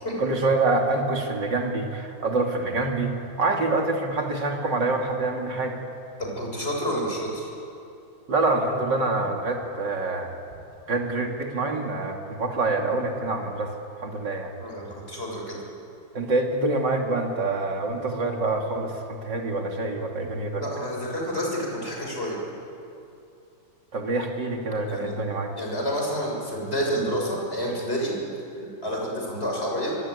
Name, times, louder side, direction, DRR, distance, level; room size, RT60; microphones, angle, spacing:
voice 1, 0.2-5.8 8.3-10.3 10.9-13.7 14.0-14.5 16.1-20.6 23.9-25.5, right 2 dB, 65° right, 2 dB, 3.2 m, -26 dB
voice 2, 6.2-7.5 14.6-15.6 20.5-22.4 24.9-25.1 25.6-28.2 28.8-30.0, equal, 30° left, -1 dB, 7.0 m, -29 dB
25.0 x 23.5 x 9.7 m, 2.6 s
omnidirectional pair, 2.1 m